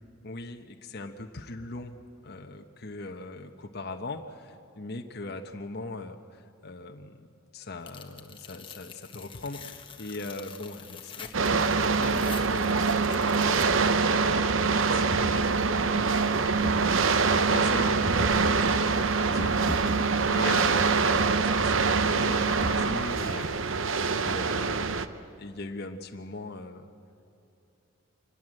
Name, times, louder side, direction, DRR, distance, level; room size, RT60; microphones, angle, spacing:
voice 1, 0.2-2.0 2.2-7.3 7.5-25.1 25.4-26.9, left 2 dB, 50° left, 4 dB, 1.1 m, -40 dB
Tearing, 7.9-14.0, left 6 dB, 25° left, 1.2 m, -46 dB
sound 1, 11.3-25.1, right 4 dB, 70° right, 0.8 m, -25 dB
sound 2, 14.4-23.3, equal, 90° right, 3.2 m, -37 dB
25.5 x 20.5 x 7.7 m, 2.7 s
head